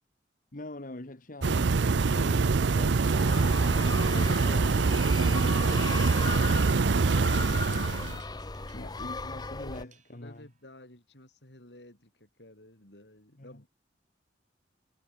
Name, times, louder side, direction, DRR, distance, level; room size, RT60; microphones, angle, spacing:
voice 1, 0.5-3.2 3.6-5.8 8.7-10.5 13.4-13.6, left 1 dB, 50° left, 1.8 m, -43 dB
sound 1, 1.4-8.2, right 4 dB, 80° right, 0.6 m, -24 dB
sound 2, 2.4-10.5, right 8 dB, 45° right, 7.8 m, -59 dB
sound 3, 3.1-9.8, left 3 dB, 25° left, 0.9 m, -37 dB
voice 2, 10.1-13.7, left 1 dB, 70° left, 6.6 m, -54 dB
head